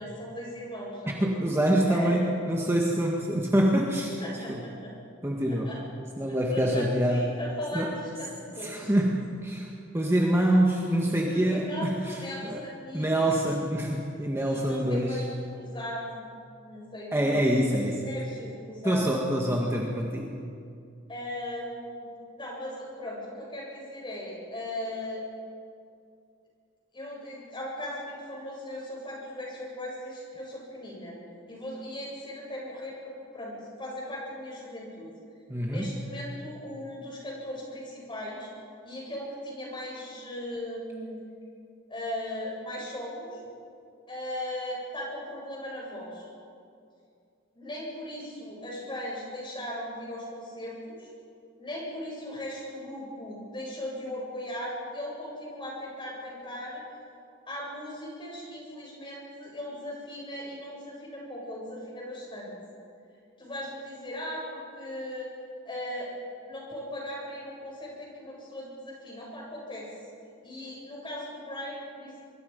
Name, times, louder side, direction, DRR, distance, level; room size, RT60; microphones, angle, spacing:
voice 1, 0.0-1.2 1.9-2.2 4.2-4.9 5.5-5.8 6.3-8.9 11.3-13.5 14.3-15.2 15.5-16.3 16.6-17.6 18.0-19.1 21.1-22.1 22.4-25.2 26.9-31.2 31.5-33.5 33.8-35.1 35.7-38.5 38.8-41.2 41.9-43.4 44.1-46.3 47.5-51.1 51.6-56.8 57.5-62.5 63.4-65.3 65.6-66.1 66.4-69.9 70.4-72.2, left 1 dB, 25° left, -3 dB, 7.9 m, -38 dB
voice 2, 1.2-4.1 4.5-4.6 5.2-5.7 6.2-7.3 7.7-7.9 8.6-9.7 9.9-12.6 12.9-15.2 17.1-18.0 18.8-20.3 35.5-35.9, right 1 dB, 15° right, -1 dB, 1.8 m, -26 dB
25.0 x 23.0 x 5.4 m, 2.4 s
head